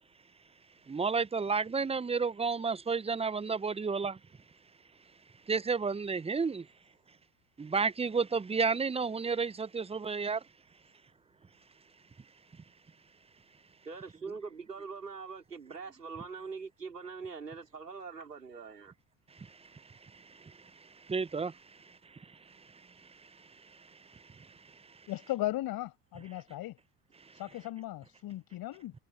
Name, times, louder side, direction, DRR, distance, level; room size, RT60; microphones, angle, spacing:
voice 1, 0.9-4.2 5.5-6.6 7.6-10.4 21.1-21.5, right 5 dB, 15° right, 1.0 m, -31 dB
voice 2, 13.8-18.9, right 5 dB, 90° right, 4.5 m, -43 dB
voice 3, 25.1-26.8 27.3-28.9, left 15 dB, 50° left, 6.2 m, -37 dB
figure-of-eight pair, 65°, 46 cm